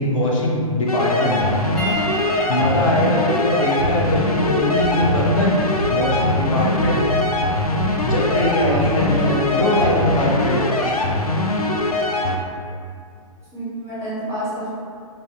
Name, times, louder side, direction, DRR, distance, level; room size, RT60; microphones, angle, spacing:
voice 1, 0.0-1.4 2.2-5.6 5.9-7.0 8.0-11.0, left 1 dB, 60° left, -4 dB, 0.7 m, -21 dB
sound 1, 0.9-12.4, left 1 dB, 90° left, 0.4 m, -22 dB
Piano, 1.8-6.4 7.4-7.6 9.5-9.6, equal, 5° left, 0.8 m, -32 dB
sound 2, 3.8-4.2 4.8-5.2 5.8-6.2 6.8-7.2 7.8-8.2 8.8-9.2 9.8-10.2, right 2 dB, 55° right, 0.8 m, -26 dB
voice 2, 8.7-9.7 13.5-14.7, equal, 15° right, -11 dB, 1.4 m, -30 dB
5.2 x 2.6 x 2.3 m, 2.2 s
figure-of-eight pair, 115°, 19 cm